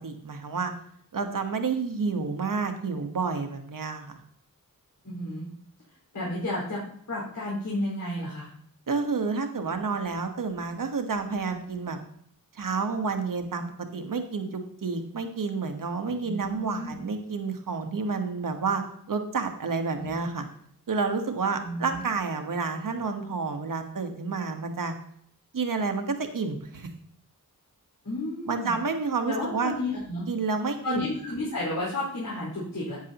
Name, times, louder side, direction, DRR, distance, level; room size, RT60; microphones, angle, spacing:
voice 1, 0.0-0.7 1.1-4.2 8.9-12.0 12.5-18.8 19.1-20.5 20.9-24.9 25.5-26.9 28.5-29.7 30.3-31.1, right 4 dB, 65° right, 5 dB, 1.4 m, -29 dB
voice 2, 5.0-5.5 6.1-6.8 7.1-8.5 16.2-17.0 20.0-20.1 21.6-22.1 28.0-28.8 29.2-30.2 30.8-33.0, left 1 dB, 65° left, -7 dB, 5.0 m, -32 dB
11.0 x 9.8 x 3.0 m, 0.65 s
wide cardioid pair, 90°, 34 cm